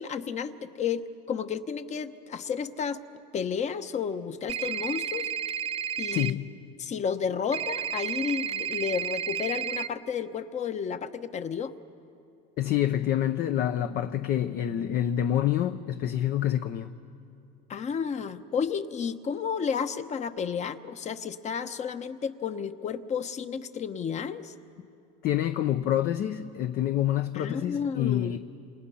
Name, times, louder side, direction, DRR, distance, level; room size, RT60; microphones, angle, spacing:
voice 1, 0.0-3.0 3.3-5.3 6.0-6.4 6.8-11.7 17.7-24.5 27.3-28.4, left 6 dB, 35° left, 1.0 m, -32 dB
sound 1, 4.5-6.3 7.5-9.9, right 9 dB, 30° right, 0.6 m, -32 dB
voice 2, 6.1-6.6 12.6-16.9 25.2-28.4, left 11 dB, 50° left, 0.8 m, -27 dB
28.0 x 27.5 x 5.7 m
supercardioid pair, 120°, 21 cm